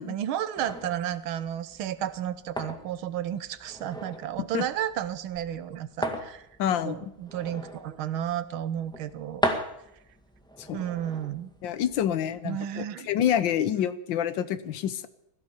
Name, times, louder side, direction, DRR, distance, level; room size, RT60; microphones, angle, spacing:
voice 1, 0.0-6.5 6.8-9.5 10.7-11.5 12.4-13.1, right 10 dB, 75° right, 13 dB, 1.7 m, -32 dB
sound 1, 0.5-12.4, equal, ahead, 1.5 m, -38 dB
voice 2, 6.6-7.0 10.7-10.8 11.6-15.1, left 10 dB, 70° left, 14 dB, 1.5 m, -27 dB
16.0 x 12.5 x 7.0 m, 0.81 s
omnidirectional pair, 2.3 m